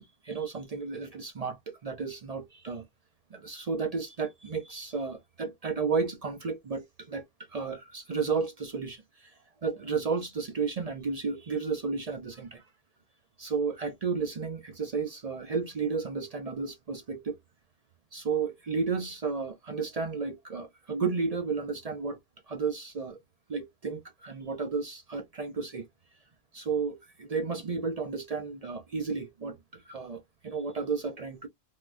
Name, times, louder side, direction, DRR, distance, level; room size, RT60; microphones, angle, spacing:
voice 1, 0.0-2.8 3.3-12.6 13.4-17.4 18.1-22.2 22.5-23.2 23.5-25.9 26.5-31.5, right 5 dB, 45° right, 0.5 m, -33 dB
3.5 x 2.2 x 2.5 m
omnidirectional pair, 1.2 m